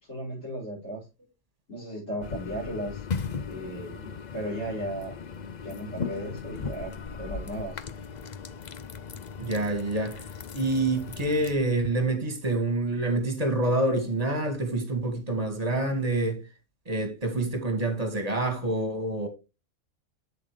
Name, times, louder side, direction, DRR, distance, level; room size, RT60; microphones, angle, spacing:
voice 1, 0.1-1.1 1.7-3.1 3.4-5.2 5.6-7.8, right 1 dB, 80° left, 5.7 m, -36 dB
sound 1, 2.2-11.5, left 5 dB, 45° left, 0.6 m, -37 dB
voice 2, 9.4-10.2 10.5-16.4 16.9-19.3, right 2 dB, 30° right, 2.0 m, -27 dB
8.2 x 7.4 x 3.2 m
omnidirectional pair, 1.3 m